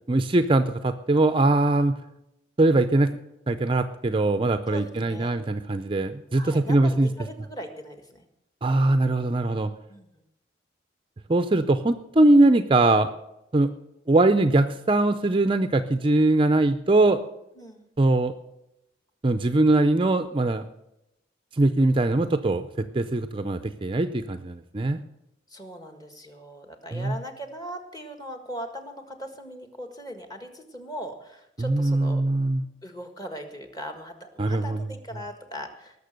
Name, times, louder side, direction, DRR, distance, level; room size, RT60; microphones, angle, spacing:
voice 1, 0.1-2.0 2.6-3.2 3.5-7.1 8.6-9.7 11.3-13.1 13.5-13.7 14.1-17.2 18.0-18.3 19.2-20.6 21.6-22.7 22.9-25.0 26.9-27.1 31.6-32.6 34.4-34.8, right 2 dB, 30° right, 10 dB, 0.5 m, -21 dB
voice 2, 4.7-5.4 6.4-8.3 9.9-10.1 17.6-17.9 25.5-32.2 32.8-36.0, equal, 20° left, 6 dB, 1.6 m, -39 dB
18.5 x 6.8 x 6.5 m, 0.86 s
head